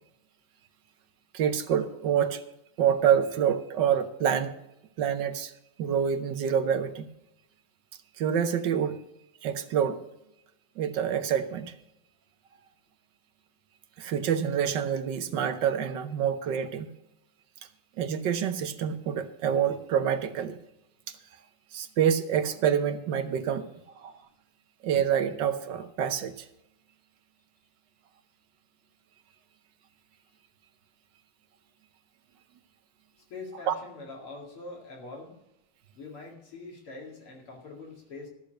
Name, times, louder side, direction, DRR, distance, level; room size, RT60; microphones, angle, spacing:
voice 1, 1.3-2.4 2.8-4.5 5.0-5.5 5.8-7.0 8.2-9.0 9.4-10.0 10.8-11.7 14.0-16.9 18.0-20.6 21.7-23.6 24.0-24.1 24.8-26.5 33.7-33.8, right 8 dB, 65° right, 9 dB, 1.4 m, -27 dB
voice 2, 33.3-35.3 35.9-38.3, left 3 dB, 85° left, 0 dB, 3.2 m, -43 dB
13.0 x 6.7 x 6.5 m, 0.85 s
omnidirectional pair, 2.3 m